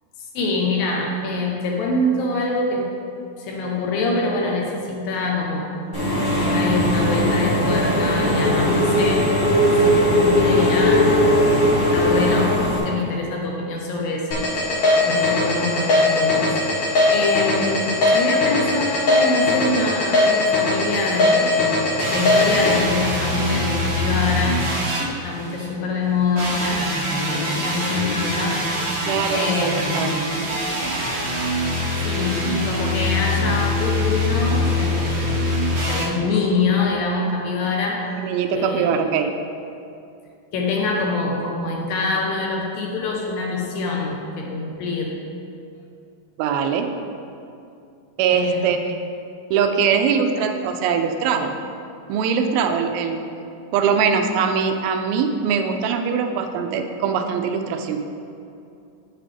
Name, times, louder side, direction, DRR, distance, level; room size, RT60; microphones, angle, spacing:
voice 1, 0.3-3.0 3.4-5.8 6.5-9.4 9.8-21.7 22.1-24.7 25.1-26.9 27.3-28.7 29.3-29.9 32.0-38.1 38.5-39.0 40.5-45.2 48.3-48.6, left 3 dB, 75° left, 0 dB, 2.5 m, -25 dB
Engine / Mechanisms, 5.9-12.8, equal, 35° left, 2.0 m, -18 dB
sound 1, 14.3-22.7, left 2 dB, 55° left, 2.6 m, -19 dB
sound 2, 22.0-25.7 26.4-36.1, left 1 dB, 55° right, 1.6 m, -24 dB
voice 2, 29.1-30.1 38.2-39.3 46.4-46.9 48.2-49.0 49.5-51.6 52.1-53.3 53.7-58.0, right 6 dB, 85° right, 5 dB, 2.4 m, -22 dB
8.3 x 7.6 x 3.3 m, 2.6 s
omnidirectional pair, 4.3 m